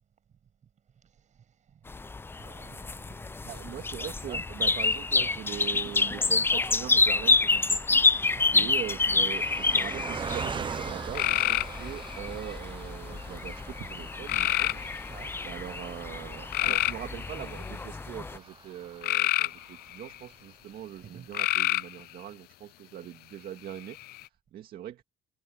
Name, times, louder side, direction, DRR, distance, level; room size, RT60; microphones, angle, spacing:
voice 1, 0.9-3.6 4.0-4.4 5.2-5.4 5.8-6.0 8.4-8.7 15.1-15.4 21.0-21.3, right 8 dB, 45° right, 6.4 m, -51 dB
sound 1, 1.9-18.4, left 3 dB, 15° left, 0.5 m, -28 dB
voice 2, 3.4-8.3 8.5-15.1 15.4-25.0, right 11 dB, 65° right, 2.0 m, -41 dB
Car passing by, 5.0-20.5 21.0-21.1 21.3-21.5, right 6 dB, 30° right, 0.7 m, -43 dB
Trill trill croak, 11.1-12.2 14.3-15.1 16.5-17.8 19.0-20.2 21.3-22.0 23.7-24.2, left 17 dB, 65° left, 0.4 m, -28 dB
cardioid pair, 110°, 17 cm